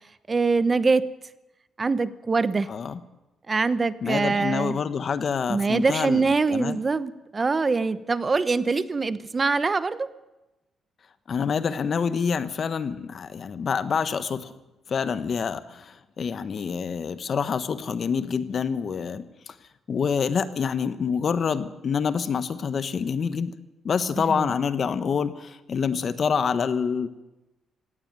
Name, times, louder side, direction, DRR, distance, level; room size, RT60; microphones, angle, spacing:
voice 1, 0.3-1.1 1.8-2.7 3.5-4.8 5.5-10.1 24.2-24.5, right 4 dB, 30° right, 15 dB, 1.0 m, -24 dB
voice 2, 2.7-3.0 4.0-6.8 11.3-14.5 14.9-19.5 19.9-23.5 23.8-27.1, left 6 dB, 50° left, 13 dB, 1.3 m, -27 dB
17.0 x 16.5 x 9.2 m, 1.0 s
cardioid pair, 85°, 0 cm